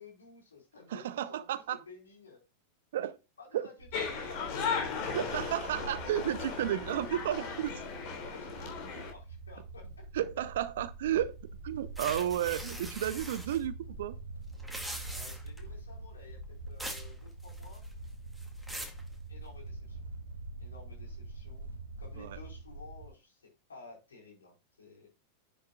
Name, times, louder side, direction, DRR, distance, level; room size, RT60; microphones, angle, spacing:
voice 1, 0.0-2.4 3.4-4.6 8.1-10.0 15.1-17.8 19.3-20.0 20.6-21.7 22.0-25.1, left 4 dB, 70° left, 4.5 m, -53 dB
voice 2, 0.9-1.8 2.9-3.2 3.5-3.7 5.1-7.7 10.1-11.4 11.6-14.2 22.2-22.4, right 11 dB, 60° right, 0.8 m, -32 dB
sound 1, 3.8-23.1, right 2 dB, 75° right, 1.4 m, -45 dB
sound 2, 3.9-9.1, left 6 dB, 45° left, 3.4 m, -36 dB
sound 3, 12.0-13.6 14.5-15.6 16.8-17.1 17.4-17.9 18.4-19.0, equal, ahead, 2.2 m, -42 dB
10.5 x 8.0 x 2.4 m
figure-of-eight pair, 90°, 0 cm